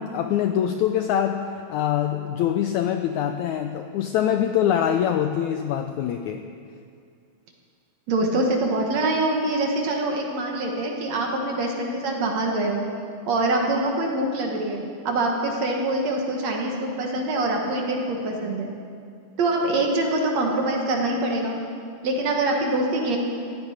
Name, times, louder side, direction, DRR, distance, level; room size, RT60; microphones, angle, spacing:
voice 1, 0.0-6.5, left 10 dB, 85° left, 6 dB, 1.7 m, -24 dB
voice 2, 8.1-12.8 13.3-18.7 19.4-21.6 22.0-23.2, right 2 dB, 55° right, 1 dB, 2.5 m, -24 dB
17.5 x 15.0 x 5.0 m, 2.3 s
omnidirectional pair, 4.0 m